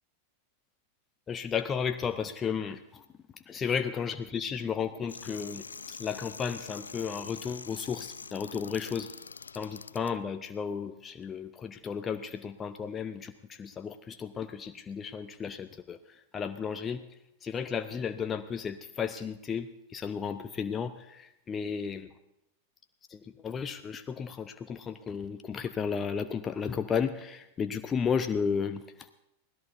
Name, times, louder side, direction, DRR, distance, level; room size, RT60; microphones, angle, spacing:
voice 1, 1.3-3.0 3.3-9.1 9.5-22.1 23.1-29.1, left 6 dB, 20° left, 9 dB, 0.6 m, -34 dB
sound 1, 5.1-10.1, left 5 dB, 75° left, 0.5 m, -45 dB
24.5 x 17.0 x 2.6 m, 0.89 s
figure-of-eight pair, 90°, 0 cm